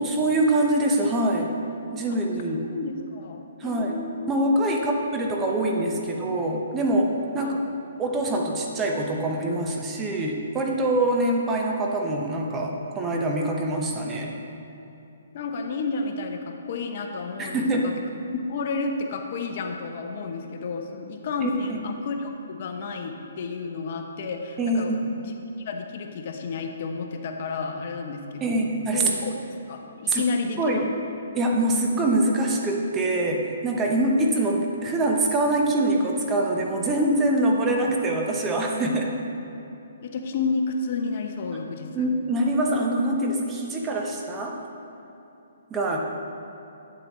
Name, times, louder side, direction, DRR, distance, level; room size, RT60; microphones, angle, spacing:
voice 1, 0.0-1.5 1.9-2.7 3.6-4.0 4.3-7.6 8.0-14.3 17.4-17.9 21.4-21.8 24.6-25.1 28.4-29.1 30.1-30.2 30.6-30.8 31.3-39.2 41.5-41.6 41.9-44.6 45.7-46.0, right 1 dB, 15° right, 0 dB, 0.8 m, -24 dB
voice 2, 2.7-5.0 5.7-6.2 7.4-7.6 15.3-17.9 18.3-29.3 29.7-30.9 40.0-42.0, left 4 dB, 50° left, 4 dB, 0.7 m, -31 dB
8.8 x 7.6 x 3.1 m, 2.9 s
hypercardioid pair, 140°, 0 cm